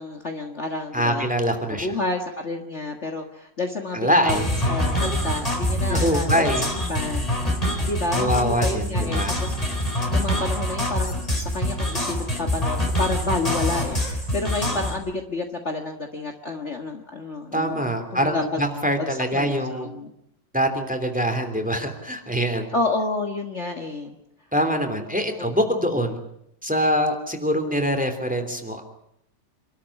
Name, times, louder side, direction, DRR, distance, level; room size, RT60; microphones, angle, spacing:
voice 1, 0.0-1.3 1.7-7.3 7.6-17.8 18.1-18.6 19.0-19.1 19.3-20.1 22.7-24.2 25.4-25.5, left 2 dB, 40° left, 3 dB, 1.9 m, -30 dB
voice 2, 0.9-1.9 3.9-4.5 5.9-6.7 8.1-9.3 17.5-19.9 20.5-22.7 24.5-26.2 26.6-28.8, equal, 5° right, 6 dB, 3.1 m, -24 dB
sound 1, 4.3-14.9, left 1 dB, 20° left, 4.1 m, -25 dB
27.0 x 13.0 x 9.8 m, 0.78 s
omnidirectional pair, 1.9 m